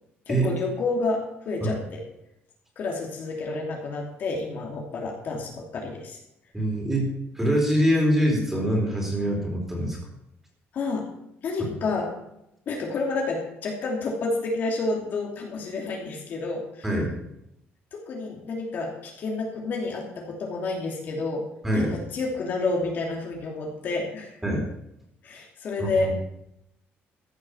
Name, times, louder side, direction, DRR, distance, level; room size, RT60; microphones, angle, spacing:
voice 1, 0.3-2.0 2.8-6.2 10.7-11.1 11.4-12.2 12.7-16.9 17.9-21.5 21.7-24.3 25.2-26.2, left 3 dB, 45° left, 0 dB, 2.9 m, -29 dB
voice 2, 6.5-10.0 16.8-17.1 21.6-21.9 24.4-24.6 25.8-26.1, equal, 5° right, -1 dB, 4.1 m, -24 dB
15.0 x 7.8 x 7.2 m, 0.81 s
cardioid pair, 165°, 4 cm